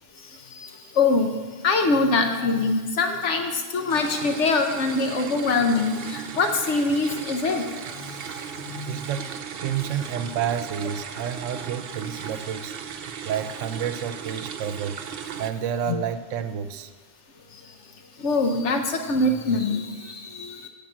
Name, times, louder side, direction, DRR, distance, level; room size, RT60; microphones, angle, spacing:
voice 1, 1.0-1.3 1.6-7.6 8.7-9.0 15.9-16.0 18.2-20.7, left 3 dB, 70° left, 5 dB, 1.1 m, -23 dB
sound 1, 3.9-15.5, right 7 dB, 60° right, 0.7 m, -36 dB
voice 2, 8.9-9.3 9.6-12.8 13.2-15.0 15.4-16.9, right 8 dB, 85° right, 10 dB, 1.0 m, -29 dB
9.1 x 5.2 x 7.3 m, 1.4 s
omnidirectional pair, 1.3 m